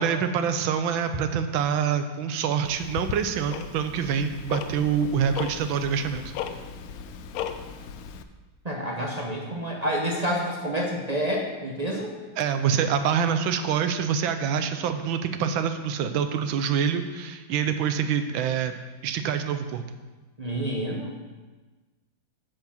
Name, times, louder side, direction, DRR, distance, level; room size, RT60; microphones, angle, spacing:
voice 1, 0.0-6.3 12.4-18.7 19.0-19.8, right 7 dB, 85° right, 9 dB, 1.4 m, -26 dB
Tick-tock, 2.7-8.2, left 8 dB, 85° left, 0.7 m, -37 dB
voice 2, 8.6-12.1 20.4-21.1, equal, 40° right, -2 dB, 0.5 m, -28 dB
7.9 x 4.8 x 7.2 m, 1.3 s
omnidirectional pair, 2.1 m